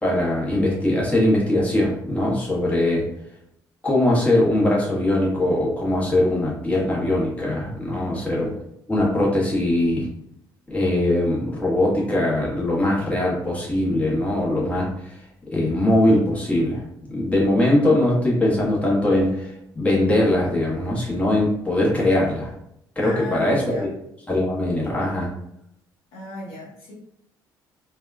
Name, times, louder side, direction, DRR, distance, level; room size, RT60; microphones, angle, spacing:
voice 1, 0.0-3.1 3.8-8.5 8.9-10.1 10.7-15.2 15.5-16.8 17.1-22.5 22.9-23.9 24.3-25.3, left 1 dB, 10° left, -5 dB, 1.3 m, -21 dB
voice 2, 7.9-8.4 23.0-23.9 26.1-26.9, left 2 dB, 60° left, -6 dB, 0.8 m, -36 dB
3.4 x 2.2 x 2.4 m, 0.76 s
figure-of-eight pair, 50°, 11 cm